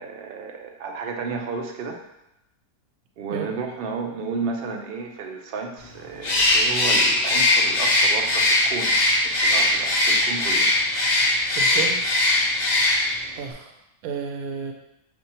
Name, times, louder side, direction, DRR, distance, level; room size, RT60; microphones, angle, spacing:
voice 1, 0.0-2.0 3.2-8.9 9.2-10.7, right 4 dB, 60° right, 2 dB, 0.6 m, -32 dB
Bird, 6.2-13.3, left 2 dB, 45° left, 0.6 m, -20 dB
voice 2, 11.5-12.0 13.4-13.7 14.0-14.7, right 6 dB, 85° right, 3 dB, 1.0 m, -31 dB
6.4 x 2.6 x 2.8 m, 0.87 s
omnidirectional pair, 1.5 m